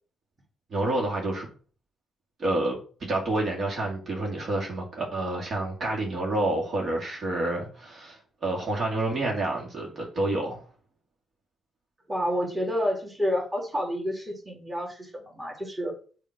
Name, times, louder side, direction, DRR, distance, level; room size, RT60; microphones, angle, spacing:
voice 1, 0.7-1.5 2.4-10.7, right 2 dB, 50° right, 2.0 m, -29 dB
voice 2, 12.1-15.9, equal, 15° right, 2.3 m, -29 dB
7.2 x 2.9 x 5.9 m
cardioid pair, 90°, 0 cm